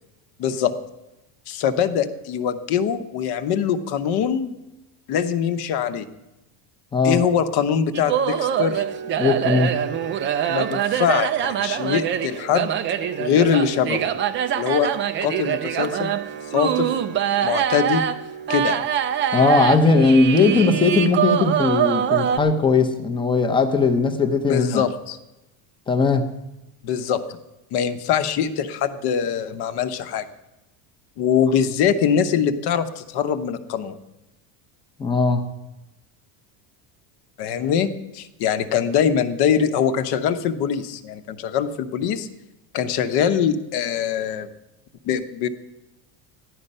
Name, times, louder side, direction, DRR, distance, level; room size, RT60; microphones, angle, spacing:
voice 1, 0.4-0.7 1.5-4.5 5.1-6.1 7.0-8.8 10.5-12.7 13.2-14.1 14.6-14.9 15.2-16.1 16.5-16.9 17.4-18.0 18.5-18.8 24.4-25.2 26.8-27.4 27.7-30.3 31.2-34.0 37.4-42.3 42.7-44.5 45.0-45.5, left 8 dB, 50° left, 10 dB, 1.0 m, -23 dB
sound 1, 7.9-22.4, right 9 dB, 25° right, 0.4 m, -24 dB
voice 2, 9.2-9.8 19.3-24.8 25.9-26.3 35.0-35.5, left 3 dB, 10° left, 6 dB, 0.7 m, -18 dB
14.5 x 11.5 x 5.4 m, 0.99 s
cardioid pair, 170°, 49 cm